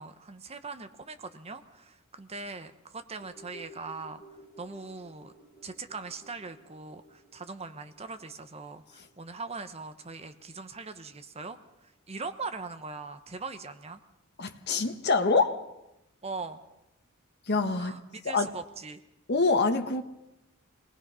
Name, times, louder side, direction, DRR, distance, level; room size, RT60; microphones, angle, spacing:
voice 1, 0.0-4.2 4.6-5.3 5.6-14.0 16.2-16.6 17.8-19.0, right 4 dB, 30° right, 9 dB, 1.0 m, -41 dB
sound 1, 3.2-11.6 11.9-12.0, right 1 dB, 30° left, 5.4 m, -55 dB
voice 2, 14.4-15.6 17.5-17.9 18.2-18.5 19.3-20.0, left 3 dB, 50° left, 6 dB, 1.4 m, -25 dB
26.5 x 19.0 x 5.6 m, 0.88 s
head